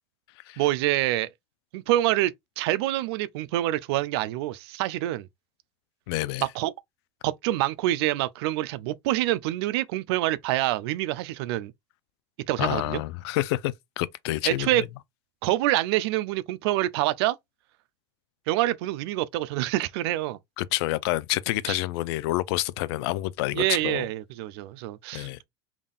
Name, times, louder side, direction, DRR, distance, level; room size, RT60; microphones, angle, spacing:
voice 1, 0.6-1.3 1.7-5.3 6.4-6.7 7.2-11.7 12.5-13.0 14.4-14.8 15.4-17.4 18.5-20.4 21.7-21.8 23.5-25.5, right 15 dB, 75° right, 0.4 m, -26 dB
voice 2, 6.1-6.5 12.6-14.9 20.6-24.1 25.1-25.4, left 17 dB, 75° left, 0.4 m, -28 dB
3.6 x 2.4 x 3.6 m
supercardioid pair, 125°, 14 cm